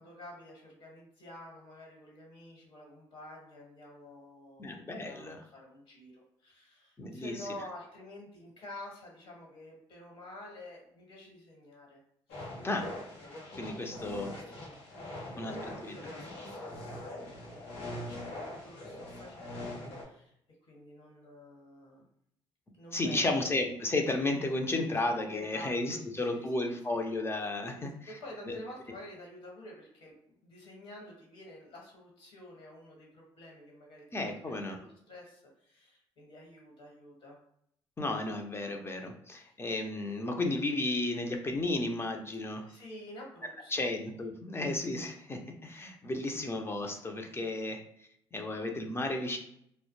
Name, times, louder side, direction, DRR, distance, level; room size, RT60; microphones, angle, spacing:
voice 1, 0.0-12.0 12.3-12.5 13.6-20.3 20.6-22.1 22.7-23.3 25.3-27.0 27.7-34.2 34.4-37.4 39.4-39.5 42.7-43.9, left 1 dB, 60° left, -1 dB, 1.2 m, -50 dB
voice 2, 4.6-5.4 7.0-7.4 12.6-12.9 13.6-14.3 15.4-15.9 22.9-27.9 28.5-28.6 34.1-34.8 38.0-42.7 43.7-47.8 48.3-49.4, left 2 dB, 25° left, 3 dB, 0.5 m, -33 dB
sound 1, 12.3-20.0, left 1 dB, 90° left, 0.7 m, -42 dB
2.1 x 2.1 x 3.0 m, 0.73 s
supercardioid pair, 70°, 10 cm